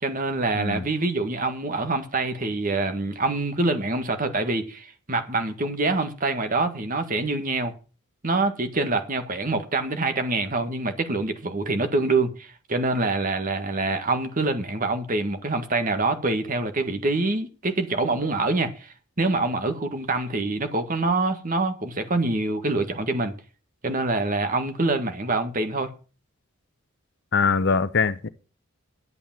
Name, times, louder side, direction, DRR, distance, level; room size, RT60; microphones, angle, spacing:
voice 1, 0.0-7.7 8.2-23.3 23.8-25.9, right 2 dB, 40° right, 1.6 m, -25 dB
voice 2, 27.3-28.3, left 5 dB, 55° left, 0.8 m, -22 dB
11.0 x 8.5 x 7.4 m
head